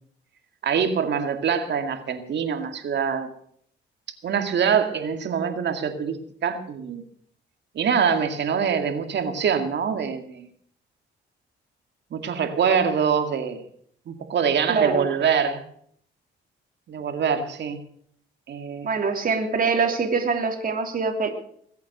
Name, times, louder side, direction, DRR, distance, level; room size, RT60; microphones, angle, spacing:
voice 1, 0.6-3.3 4.2-6.2 6.4-7.0 7.7-10.5 12.1-13.6 14.1-15.6 16.9-17.8 18.5-18.9, right 7 dB, 60° right, 7 dB, 2.3 m, -24 dB
voice 2, 14.7-15.0 18.8-21.3, right 5 dB, 45° right, 3 dB, 3.1 m, -24 dB
21.5 x 8.4 x 6.8 m, 0.64 s
cardioid pair, 90°, 20 cm